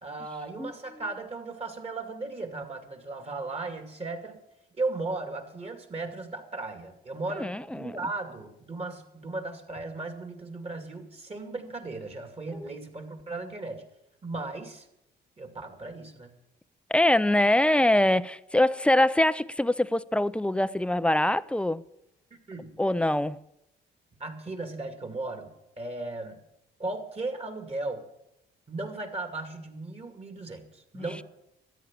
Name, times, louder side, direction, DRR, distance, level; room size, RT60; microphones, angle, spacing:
voice 1, 0.0-4.4 4.7-13.8 14.2-14.9 15.4-16.3 22.3-22.8 24.2-26.4 26.8-28.0 28.7-31.2, right 3 dB, 30° right, 2.4 m, -36 dB
voice 2, 7.4-8.0 12.6-12.7 16.9-21.8 22.8-23.4 30.9-31.0, left 1 dB, 5° left, 0.5 m, -24 dB
13.5 x 10.5 x 7.4 m
cardioid pair, 90°, 20 cm